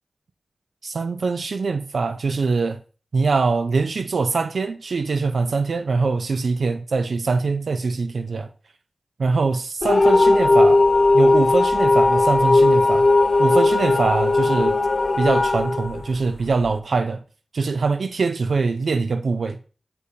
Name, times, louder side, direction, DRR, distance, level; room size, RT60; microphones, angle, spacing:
voice 1, 0.8-2.8 3.1-8.5 9.2-10.9 11.1-13.1 13.4-14.8 15.2-17.2 17.5-19.6, right 4 dB, 80° right, 0.3 m, -23 dB
sound 1, 9.8-16.7, left 2 dB, 60° left, 0.4 m, -17 dB
6.8 x 5.1 x 2.7 m
cardioid pair, 45°, 0 cm